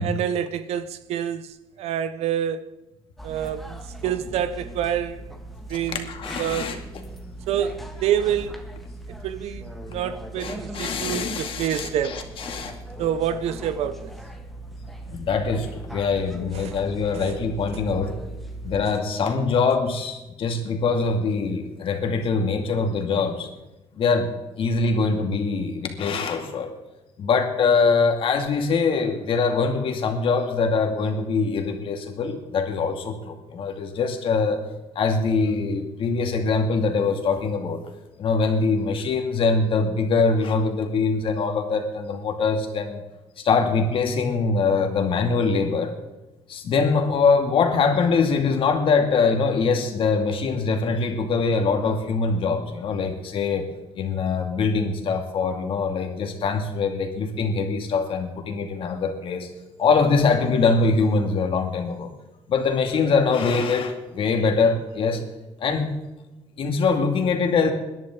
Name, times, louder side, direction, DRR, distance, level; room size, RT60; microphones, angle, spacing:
voice 1, 0.0-2.8 3.2-5.3 5.7-6.7 7.5-8.6 9.1-12.2 13.0-14.1 16.5-16.7 17.1-17.4 17.7-17.8, right 9 dB, 75° right, 0.8 m, -27 dB
sound 1, 3.2-18.9, right 1 dB, ahead, 1.8 m, -38 dB
voice 2, 5.7-6.8 10.4-12.8 15.1-18.1 18.6-23.5 23.9-24.3 24.6-26.7 27.2-34.6 35.0-37.8 38.2-43.0 43.4-45.9 46.5-53.7 54.0-59.5 59.8-62.1 62.5-65.2 65.6-65.9 66.6-67.7, left 4 dB, 55° left, 2.4 m, -23 dB
21.5 x 11.0 x 3.8 m
cardioid pair, 115°, 11 cm